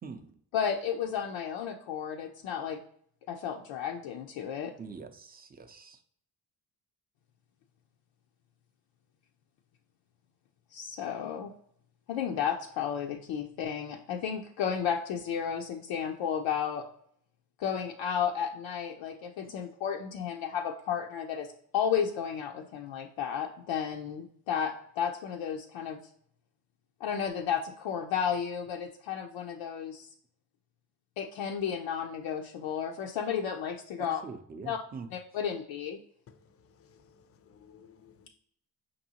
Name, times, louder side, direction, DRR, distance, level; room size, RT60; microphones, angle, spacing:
voice 1, 0.0-0.4 4.8-6.0 34.0-35.1, right 4 dB, 20° right, 0.4 m, -44 dB
voice 2, 0.5-2.8 3.3-4.7 10.7-11.5 12.1-16.8 17.6-21.5 21.7-26.0 27.0-30.1 31.2-34.2 34.7-34.8 35.3-36.0, left 8 dB, 85° left, 0.5 m, -33 dB
voice 3, 36.3-38.3, left 7 dB, 35° left, 0.4 m, -58 dB
5.3 x 2.6 x 2.8 m
cardioid pair, 90°, 44 cm